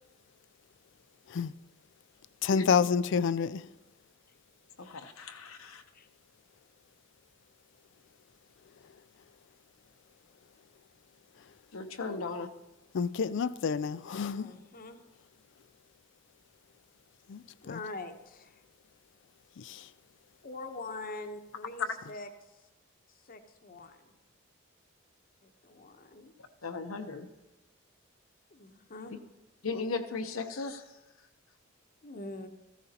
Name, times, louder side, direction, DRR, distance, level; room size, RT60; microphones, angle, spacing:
voice 1, 2.4-3.7 12.9-14.5 17.3-17.8 19.6-19.9, left 6 dB, 60° left, 0.4 m, -29 dB
voice 2, 4.8-5.8 11.7-12.5 21.8-21.9 26.6-27.3 29.6-31.0, left 4 dB, 80° left, 0.8 m, -36 dB
voice 3, 14.3-15.0 17.6-18.6 20.4-22.3 23.2-24.2 25.4-26.3 28.5-29.1 32.0-32.5, left 2 dB, 45° left, 0.9 m, -44 dB
14.5 x 14.5 x 2.9 m
head